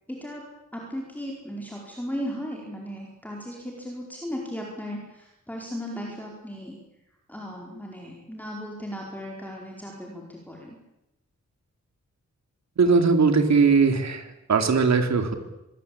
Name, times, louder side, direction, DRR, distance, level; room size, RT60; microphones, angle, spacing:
voice 1, 0.1-0.4 0.7-6.8 7.3-10.8, equal, 5° left, -1 dB, 4.8 m, -36 dB
voice 2, 12.8-15.3, right 4 dB, 65° right, 6 dB, 3.6 m, -20 dB
25.5 x 22.5 x 8.7 m, 0.91 s
wide cardioid pair, 145°, 30 cm